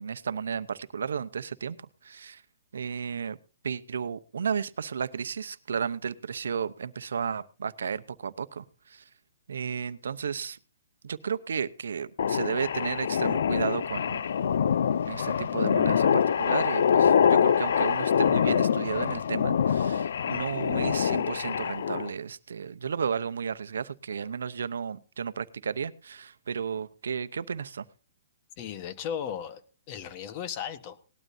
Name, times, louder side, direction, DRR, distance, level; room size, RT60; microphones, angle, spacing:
voice 1, 0.0-2.4 2.7-3.4 3.6-9.1 9.5-10.6 11.0-14.2 15.0-27.9, right 6 dB, 85° right, 0.8 m, -33 dB
sound 1, 12.2-22.1, left 7 dB, 70° left, 0.5 m, -25 dB
voice 2, 28.6-29.6 29.9-31.0, left 8 dB, 35° left, 1.3 m, -35 dB
18.5 x 12.5 x 2.7 m
hypercardioid pair, 150°, 0 cm